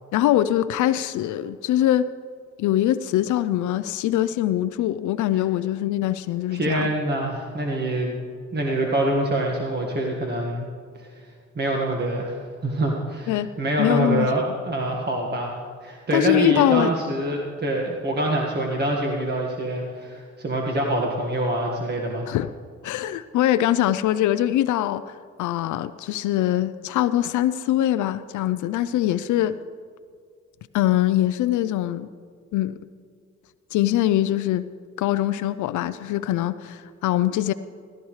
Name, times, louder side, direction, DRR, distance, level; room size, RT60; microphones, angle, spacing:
voice 1, 0.1-2.1 2.6-6.9 13.3-13.5 13.8-14.3 16.1-16.9 22.3-22.5 22.8-29.6 30.7-32.1 32.5-32.8 33.7-34.6 35.0-37.5, left 13 dB, 80° left, 0.5 m, -23 dB
voice 2, 6.5-8.1 8.5-10.7 11.0-11.1 11.5-12.4 12.6-15.6 15.8-22.3, right 1 dB, 35° right, 1.7 m, -25 dB
16.0 x 15.0 x 3.2 m
cardioid pair, 90°, 30 cm